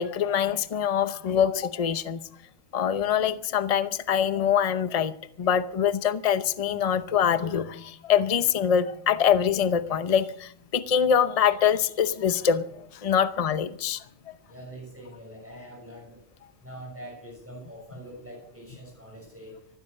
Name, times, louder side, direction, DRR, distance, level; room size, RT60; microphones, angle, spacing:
voice 1, 0.0-2.2 2.7-5.1 5.4-14.0, left 8 dB, 35° left, 13 dB, 0.7 m, -24 dB
voice 2, 14.5-16.2 16.6-19.6, right 1 dB, 10° right, -2 dB, 6.1 m, -44 dB
14.5 x 12.5 x 6.5 m, 0.66 s
omnidirectional pair, 1.3 m